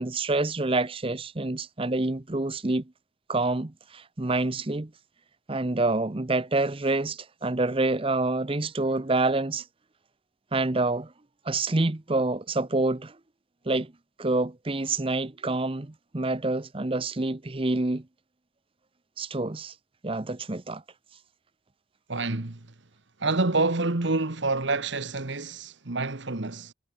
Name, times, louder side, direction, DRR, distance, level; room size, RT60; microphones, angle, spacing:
voice 1, 0.0-2.9 3.3-4.9 5.5-9.6 10.5-11.1 11.5-13.2 13.7-13.9 14.2-18.1 19.2-19.7 20.0-20.8, right 2 dB, 25° right, 0.8 m, -27 dB
voice 2, 22.1-22.7 23.2-26.7, right 3 dB, 60° right, 1.4 m, -27 dB
head